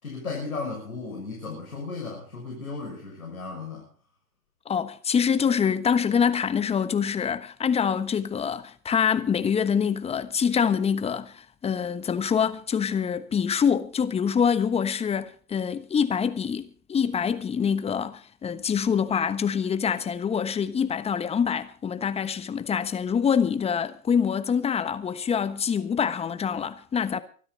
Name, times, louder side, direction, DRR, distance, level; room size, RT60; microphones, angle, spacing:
voice 1, 0.0-3.9, left 4 dB, 85° left, 6.3 m, -35 dB
voice 2, 4.7-27.2, left 7 dB, 15° left, 1.2 m, -25 dB
24.0 x 12.5 x 4.0 m
hypercardioid pair, 110°, 42 cm